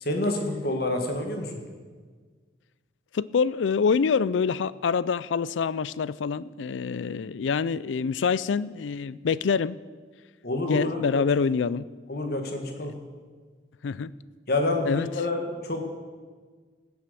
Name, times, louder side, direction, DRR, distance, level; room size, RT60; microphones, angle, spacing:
voice 1, 0.0-1.6 10.4-11.2 12.1-12.9 14.5-15.9, left 2 dB, 55° left, 4 dB, 1.8 m, -28 dB
voice 2, 3.1-9.8 10.7-11.9 12.8-12.9 13.8-14.1 14.8-15.1, left 5 dB, 90° left, 19 dB, 0.4 m, -26 dB
15.5 x 7.8 x 6.9 m, 1.5 s
head